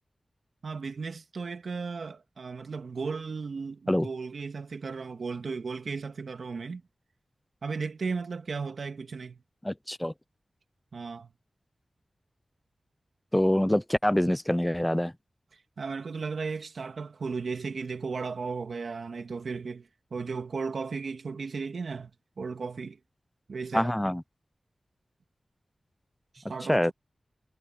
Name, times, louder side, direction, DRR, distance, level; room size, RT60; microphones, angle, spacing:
voice 1, 0.6-6.8 7.6-9.4 10.9-11.3 15.8-22.1 22.4-23.0 23.5-23.9 26.3-26.9, right 4 dB, 75° right, 2.5 m, -35 dB
voice 2, 9.6-10.1 13.3-15.1 23.7-24.2 26.7-26.9, left 1 dB, 10° left, 0.4 m, -25 dB
wide cardioid pair, 105°, 0 cm